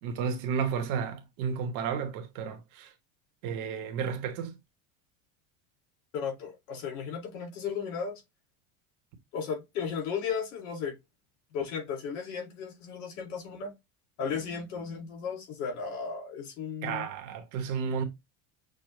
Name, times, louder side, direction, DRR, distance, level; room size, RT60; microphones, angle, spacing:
voice 1, 0.0-2.9 3.4-4.5 16.8-18.0, right 6 dB, 55° right, 1.2 m, -32 dB
voice 2, 6.1-8.2 9.3-11.0 11.5-13.7 14.2-17.1, left 6 dB, 80° left, 2.4 m, -35 dB
6.4 x 2.3 x 3.1 m
cardioid pair, 165°, 37 cm